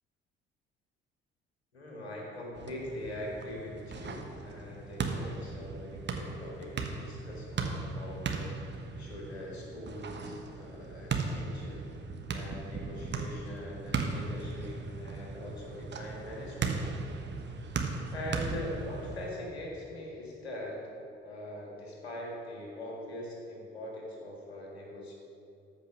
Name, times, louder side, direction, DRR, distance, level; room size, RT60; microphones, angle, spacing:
voice 1, 1.7-11.8 12.3-16.8 18.1-20.8 21.2-25.1, left 1 dB, 85° left, -2 dB, 1.7 m, -42 dB
sound 1, 2.5-19.3, right 4 dB, 35° right, 1.2 m, -37 dB
13.5 x 5.5 x 6.1 m, 2.6 s
figure-of-eight pair, 45°, 31 cm